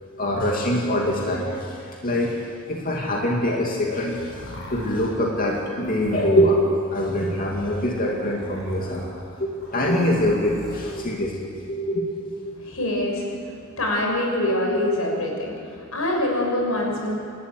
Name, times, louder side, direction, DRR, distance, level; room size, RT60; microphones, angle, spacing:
voice 1, 0.2-6.6 6.9-12.5, left 1 dB, 40° left, -2 dB, 2.8 m, -24 dB
sound 1, 3.8-11.0, left 1 dB, 60° left, 5.6 m, -42 dB
voice 2, 12.6-17.1, left 1 dB, 90° left, 0 dB, 6.5 m, -25 dB
29.0 x 13.0 x 9.6 m, 2.3 s
head